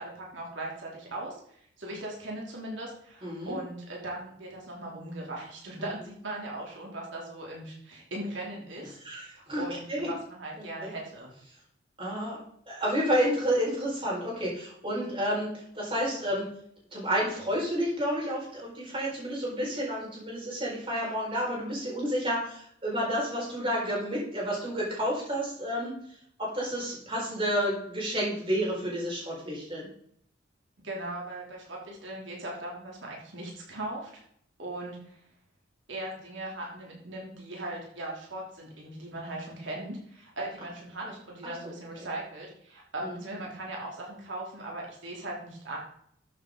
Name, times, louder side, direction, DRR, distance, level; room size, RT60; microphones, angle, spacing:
voice 1, 0.0-11.3 30.8-34.2 34.6-35.2 35.9-45.8, right 1 dB, 80° right, -2 dB, 3.1 m, -39 dB
voice 2, 3.2-3.6 9.0-9.6 9.9-10.1 10.6-10.9 12.0-12.4 12.7-16.5 16.9-25.9 26.4-29.9 43.0-43.2, equal, 30° right, -4 dB, 4.9 m, -30 dB
13.0 x 7.7 x 3.9 m, 0.67 s
head